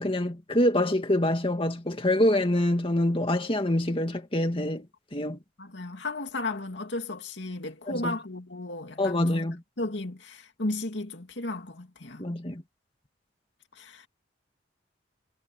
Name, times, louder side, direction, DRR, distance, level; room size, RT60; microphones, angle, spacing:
voice 1, 0.0-4.9 5.1-5.4 7.9-8.2 9.0-9.6 12.2-12.6, left 1 dB, 30° left, 2.2 m, -25 dB
voice 2, 5.6-9.5 9.8-12.3 13.8-14.1, left 2 dB, 70° left, 2.4 m, -34 dB
head